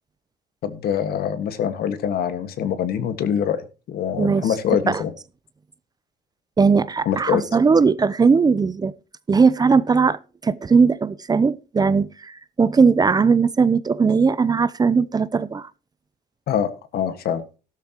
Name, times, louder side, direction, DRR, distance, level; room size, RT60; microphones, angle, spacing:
voice 1, 0.6-5.1 7.1-7.4 16.5-17.4, left 8 dB, 65° left, 1.7 m, -24 dB
voice 2, 4.2-4.6 4.9-5.0 6.6-8.9 9.3-15.7, right 5 dB, 25° right, 0.6 m, -19 dB
13.0 x 12.5 x 3.0 m
cardioid pair, 110°, 17 cm